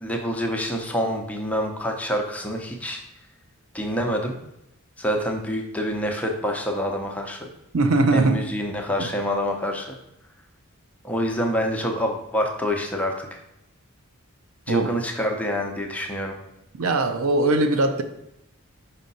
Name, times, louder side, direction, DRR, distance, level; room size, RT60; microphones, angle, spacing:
voice 1, 0.0-3.0 3.7-4.4 5.0-7.5 8.1-10.0 11.0-13.4 14.7-16.4, equal, 5° left, 0.7 m, -26 dB
voice 2, 7.7-8.5 9.0-9.1 14.7-14.9 16.7-18.0, right 2 dB, 85° right, 0.6 m, -21 dB
5.5 x 5.0 x 4.1 m
head